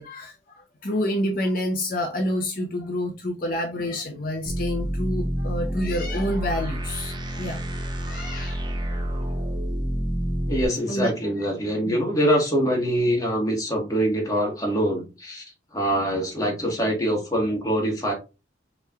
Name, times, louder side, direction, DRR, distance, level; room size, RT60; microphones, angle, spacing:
voice 1, 0.0-7.7 8.0-8.6 9.1-9.3 10.9-11.1 11.9-12.0, left 1 dB, 50° left, 1 dB, 0.7 m, -28 dB
sound 1, 4.5-10.7, equal, 25° right, 0.7 m, -28 dB
voice 2, 10.5-15.4 15.7-18.1, equal, 20° left, -1 dB, 1.4 m, -24 dB
5.5 x 3.2 x 2.4 m, 0.28 s
head